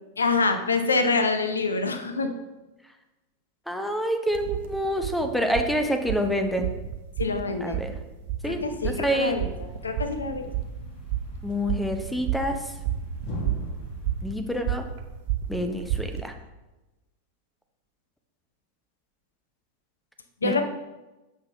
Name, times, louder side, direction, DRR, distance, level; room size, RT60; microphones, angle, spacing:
voice 1, 0.2-2.3 7.2-7.8 8.4-9.5 9.8-10.4 20.4-20.6, left 3 dB, 75° left, 7 dB, 0.6 m, -25 dB
voice 2, 3.7-6.7 7.6-8.0 8.4-9.4 11.4-12.6 14.2-14.8 15.5-16.3 20.4-20.6, equal, ahead, 6 dB, 0.7 m, -27 dB
sound 1, 4.3-16.2, right 10 dB, 50° right, 0.7 m, -32 dB
Thump thud, 8.4-14.6, left 1 dB, 35° left, 1.8 m, -41 dB
7.8 x 5.5 x 3.4 m, 1.1 s
figure-of-eight pair, 90°, 0 cm